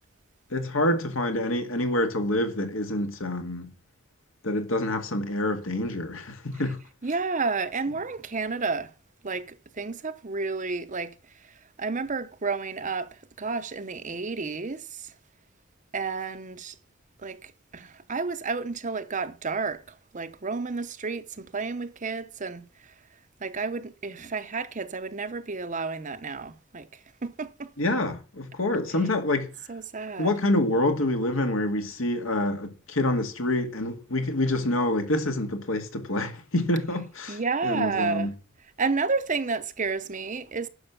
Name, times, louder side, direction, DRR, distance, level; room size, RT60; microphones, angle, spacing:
voice 1, 0.5-3.7 4.4-6.8 27.8-29.5 30.2-38.3, left 1 dB, 70° left, 2.1 m, -27 dB
voice 2, 7.0-8.9 9.2-11.1 11.8-13.1 13.4-15.1 15.9-16.7 17.2-19.8 20.1-22.6 23.4-26.9 27.2-27.7 29.7-30.3 37.3-38.3 38.8-40.7, right 4 dB, 40° right, 0.8 m, -31 dB
11.0 x 6.3 x 7.0 m
head